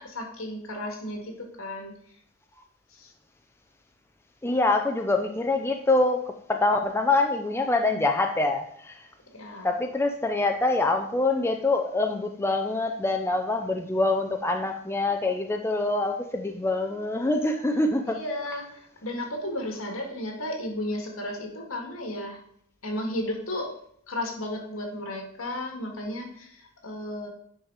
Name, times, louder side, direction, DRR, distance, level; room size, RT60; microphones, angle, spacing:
voice 1, 0.0-1.9 2.9-3.1 9.3-9.7 18.0-22.4 22.8-23.8 24.1-27.3, left 1 dB, 70° left, 3 dB, 1.9 m, -34 dB
voice 2, 4.4-9.1 9.6-18.2, left 2 dB, 10° left, 4 dB, 0.5 m, -25 dB
8.9 x 5.2 x 4.8 m, 0.66 s
head